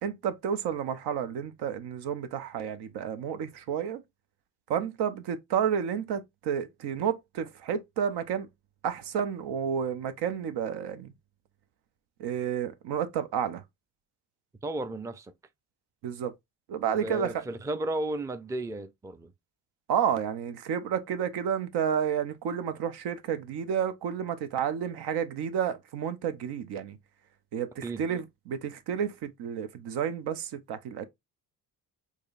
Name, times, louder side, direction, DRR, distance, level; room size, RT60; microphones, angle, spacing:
voice 1, 0.0-4.0 4.7-8.5 8.8-11.1 12.2-13.6 16.0-16.3 16.7-17.4 19.9-27.0 27.5-31.0, right 8 dB, 80° right, 0.6 m, -31 dB
voice 2, 14.6-15.3 16.9-19.3 27.8-28.0, right 1 dB, 10° right, 0.4 m, -34 dB
4.8 x 2.7 x 2.4 m
cardioid pair, 75°, 39 cm